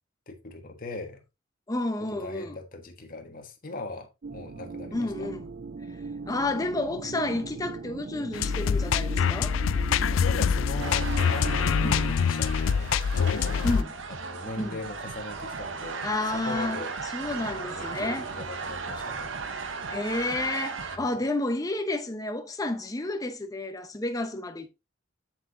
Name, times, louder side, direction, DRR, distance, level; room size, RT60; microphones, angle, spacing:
voice 1, 0.3-1.2 2.0-5.3 10.1-13.0 13.2-13.6 14.2-17.0 17.2-19.4 20.9-21.1, left 2 dB, 45° left, 1.5 m, -40 dB
voice 2, 1.7-2.6 4.9-5.4 6.3-9.6 11.8-12.0 13.6-13.9 14.6-14.8 16.0-16.8 17.1-18.2 19.9-24.7, left 2 dB, 20° left, 0.8 m, -30 dB
sound 1, 4.2-12.1, right 4 dB, 50° right, 0.5 m, -38 dB
sound 2, 8.3-13.8, left 7 dB, 80° left, 0.4 m, -25 dB
sound 3, 10.8-21.0, right 4 dB, 75° right, 1.0 m, -36 dB
7.7 x 7.3 x 2.7 m
head